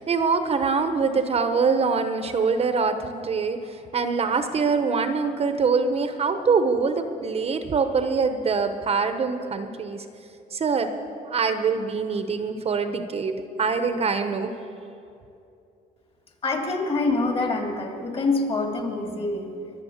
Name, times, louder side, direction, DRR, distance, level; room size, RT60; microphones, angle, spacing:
voice 1, 0.0-10.0 10.5-10.9 11.2-14.5, right 5 dB, 35° right, 8 dB, 0.9 m, -24 dB
voice 2, 16.4-19.5, left 3 dB, 35° left, 2 dB, 2.7 m, -25 dB
22.5 x 7.6 x 7.2 m, 2.7 s
cardioid pair, 110°, 17 cm